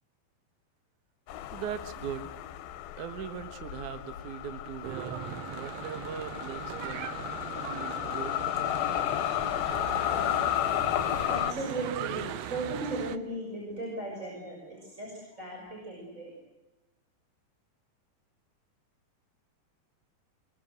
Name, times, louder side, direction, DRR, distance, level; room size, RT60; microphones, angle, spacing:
sound 1, 1.3-11.5, left 14 dB, 75° left, 2.8 m, -33 dB
voice 1, 1.5-2.3 3.0-5.2 5.5-7.1 7.7-8.4, right 8 dB, 60° right, 8 dB, 2.6 m, -39 dB
Church bell / Traffic noise roadway noise, 4.8-13.2, right 10 dB, 85° right, 1.5 m, -39 dB
voice 2, 11.3-16.3, right 2 dB, 20° right, -2 dB, 6.8 m, -36 dB
25.5 x 23.0 x 8.0 m, 1.1 s
omnidirectional pair, 4.4 m